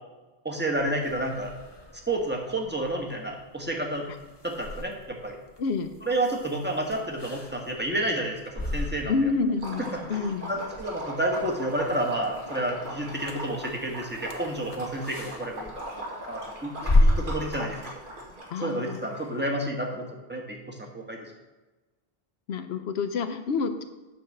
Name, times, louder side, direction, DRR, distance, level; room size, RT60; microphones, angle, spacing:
voice 1, 0.4-1.5 2.1-4.0 4.4-5.4 6.0-9.1 9.9-18.0 18.6-21.2, right 1 dB, 10° right, 0 dB, 1.3 m, -30 dB
sound 1, 0.8-18.3, left 1 dB, 25° left, 0.9 m, -33 dB
voice 2, 5.6-5.9 9.1-10.5 18.5-19.1 22.5-23.8, left 4 dB, 80° left, 9 dB, 1.0 m, -28 dB
Liquid, 9.5-19.4, right 1 dB, 55° right, 2.0 m, -40 dB
9.1 x 4.6 x 6.5 m, 1.2 s
omnidirectional pair, 1.1 m